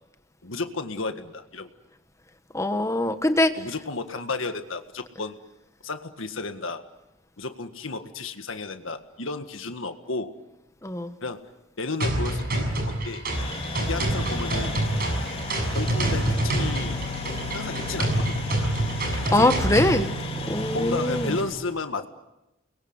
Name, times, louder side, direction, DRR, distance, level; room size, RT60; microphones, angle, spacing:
voice 1, 0.4-1.7 3.6-5.4 5.8-6.8 7.4-10.3 11.2-11.4 11.8-13.2 13.8-14.8 15.7-17.1 17.5-18.5 19.3-19.5 20.7-22.1, left 3 dB, 75° left, 7 dB, 1.8 m, -33 dB
voice 2, 2.5-3.5 10.8-11.2 19.1-20.1 20.5-21.4, left 1 dB, 15° left, 9 dB, 1.4 m, -23 dB
sound 1, 12.0-20.0, right 1 dB, 50° right, 6.7 m, -27 dB
sound 2, 13.3-21.4, left 1 dB, 30° left, 4.4 m, -33 dB
30.0 x 22.0 x 8.1 m, 0.94 s
head